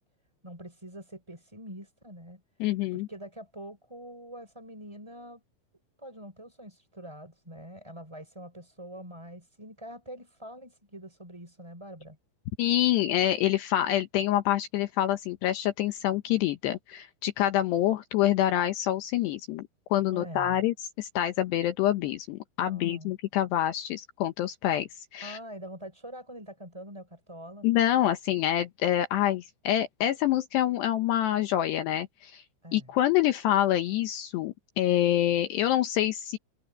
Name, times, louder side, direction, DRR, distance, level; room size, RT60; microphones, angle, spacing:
voice 1, 0.4-2.4 2.9-5.4 6.0-12.2 20.1-20.6 22.6-23.1 25.2-27.7 32.6-32.9, equal, 5° right, 4.7 m, -44 dB
voice 2, 2.6-3.1 12.6-25.4 27.6-32.4 32.7-36.4, left 12 dB, 80° left, 2.5 m, -26 dB
omnidirectional pair, 6.0 m